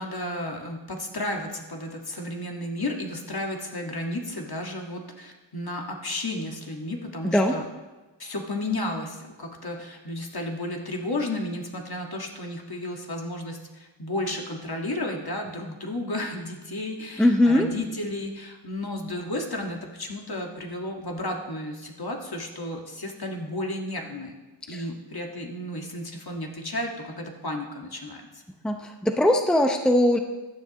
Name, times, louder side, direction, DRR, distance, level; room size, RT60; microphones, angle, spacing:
voice 1, 0.0-7.7 8.2-24.3 24.7-28.4, left 1 dB, 50° left, 1 dB, 1.7 m, -33 dB
voice 2, 7.2-7.6 17.2-17.7 24.7-24.8 28.6-30.2, left 1 dB, ahead, 4 dB, 0.7 m, -20 dB
16.5 x 11.5 x 3.0 m, 1.2 s
wide cardioid pair, 80°, 47 cm